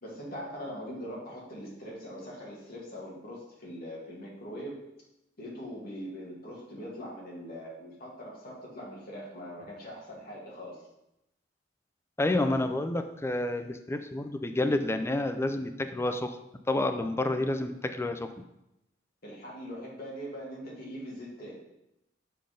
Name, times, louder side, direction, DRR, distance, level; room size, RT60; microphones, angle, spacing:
voice 1, 0.0-4.8 5.4-10.8 19.2-21.5, equal, 55° left, -4 dB, 2.2 m, -42 dB
voice 2, 12.2-16.4 16.7-18.3, left 2 dB, 15° left, 7 dB, 0.4 m, -29 dB
6.6 x 3.9 x 5.3 m, 0.87 s
head